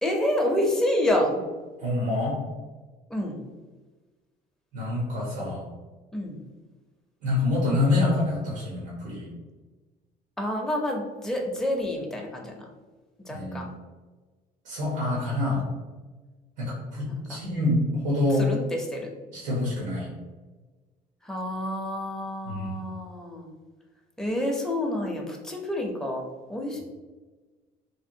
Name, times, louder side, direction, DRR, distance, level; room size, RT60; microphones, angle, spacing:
voice 1, 0.0-1.4 3.1-3.4 6.1-6.4 10.4-12.7 13.2-13.7 17.1-17.4 18.4-19.1 21.2-23.5 24.2-26.8, left 1 dB, 5° left, 0 dB, 0.5 m, -28 dB
voice 2, 1.8-2.5 4.7-5.6 7.2-9.3 13.3-13.6 14.6-15.7 16.6-18.5 19.3-20.1 22.4-22.8, left 2 dB, 85° right, -5 dB, 1.0 m, -26 dB
3.4 x 2.3 x 2.7 m, 1.3 s
cardioid pair, 110°, 17 cm